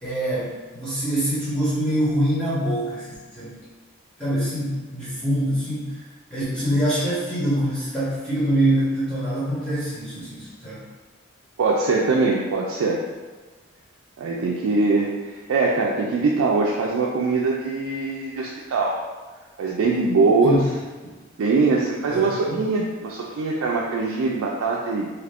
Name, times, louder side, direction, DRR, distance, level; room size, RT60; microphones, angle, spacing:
voice 1, 0.0-3.5 4.2-5.9 6.3-10.8 20.4-20.6 21.0-21.1 22.1-22.6, right 1 dB, 5° left, -12 dB, 1.2 m, -24 dB
voice 2, 11.6-13.0 14.2-19.0 19.6-20.6 21.4-25.1, right 3 dB, 80° right, -2 dB, 0.3 m, -22 dB
2.8 x 2.5 x 3.3 m, 1.3 s
head